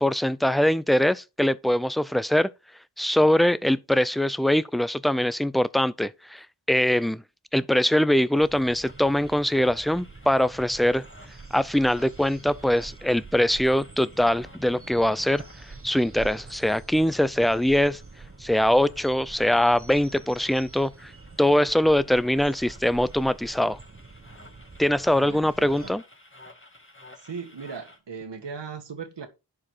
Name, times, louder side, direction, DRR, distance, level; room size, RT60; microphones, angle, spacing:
voice 1, 0.0-2.5 3.0-7.2 7.5-11.0 11.5-15.4 15.8-18.0 18.4-21.1 21.4-23.8 24.8-26.0, left 1 dB, ahead, 0.5 m, -22 dB
sound 1, 8.4-25.9, right 3 dB, 30° right, 1.3 m, -46 dB
sound 2, 8.8-28.0, left 1 dB, 30° left, 2.3 m, -53 dB
voice 2, 25.2-25.9 27.2-29.3, right 5 dB, 80° right, 1.6 m, -38 dB
11.0 x 4.9 x 4.6 m
wide cardioid pair, 50°, 42 cm